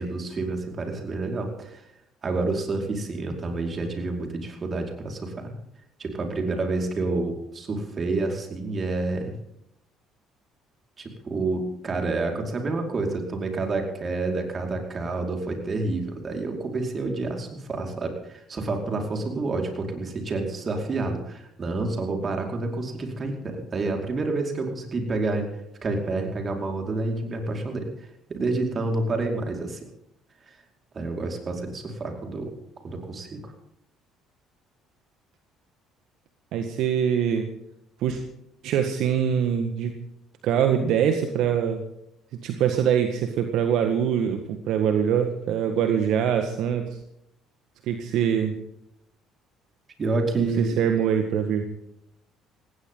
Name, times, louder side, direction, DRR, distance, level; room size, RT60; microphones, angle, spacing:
voice 1, 0.0-1.8 2.2-5.5 6.0-9.3 11.0-29.9 30.5-30.6 30.9-32.5 32.8-33.5 50.0-50.8, right 3 dB, 40° right, 3 dB, 4.9 m, -29 dB
voice 2, 36.5-37.5 38.0-38.2 38.6-40.0 40.4-41.8 42.3-47.0 47.9-48.5 50.4-51.7, right 8 dB, 70° right, 6 dB, 1.7 m, -24 dB
19.0 x 17.5 x 3.9 m, 0.78 s
hypercardioid pair, 60°, 0 cm